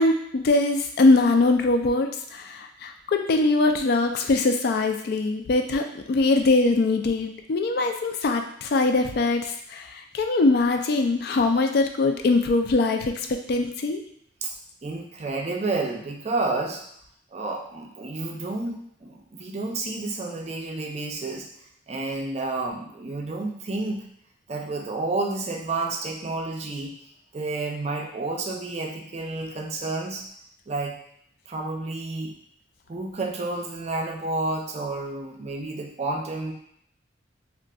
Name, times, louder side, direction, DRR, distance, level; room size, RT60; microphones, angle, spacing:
voice 1, 0.0-9.5 9.7-9.9 10.1-14.0, left 3 dB, 55° left, 5 dB, 0.3 m, -22 dB
voice 2, 14.8-16.8 17.3-21.5 21.9-24.1 24.5-26.9 27.3-30.3 30.7-31.0 31.5-32.4 32.9-36.5, right 3 dB, 35° right, 1 dB, 0.4 m, -30 dB
3.7 x 2.4 x 2.3 m, 0.69 s
head